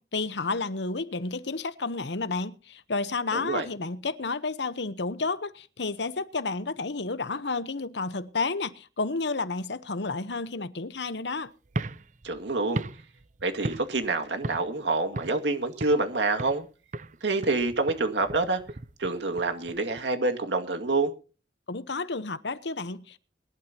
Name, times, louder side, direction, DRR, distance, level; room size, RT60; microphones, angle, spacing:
voice 1, 0.0-11.5 21.7-23.2, left 3 dB, 75° left, 1.0 m, -31 dB
voice 2, 3.3-3.7 12.2-12.8 13.4-16.7 17.2-18.6 19.0-21.1, right 3 dB, 80° right, 2.2 m, -27 dB
sound 1, 11.6-14.1 14.4-14.8 15.1-16.1 16.4-16.7 16.9-20.0, right 2 dB, 45° right, 0.6 m, -37 dB
22.5 x 12.0 x 2.9 m
head